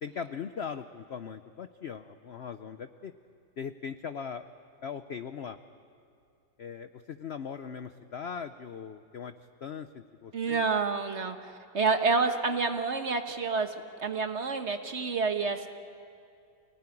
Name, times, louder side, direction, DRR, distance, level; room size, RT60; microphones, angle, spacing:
voice 1, 0.0-3.1 3.6-4.4 4.8-5.6 6.6-9.3 9.6-10.6, left 6 dB, 65° left, 10 dB, 0.6 m, -39 dB
voice 2, 10.3-13.7 14.0-15.7, right 4 dB, 40° right, 6 dB, 1.3 m, -28 dB
27.0 x 18.5 x 9.9 m, 2.5 s
omnidirectional pair, 1.9 m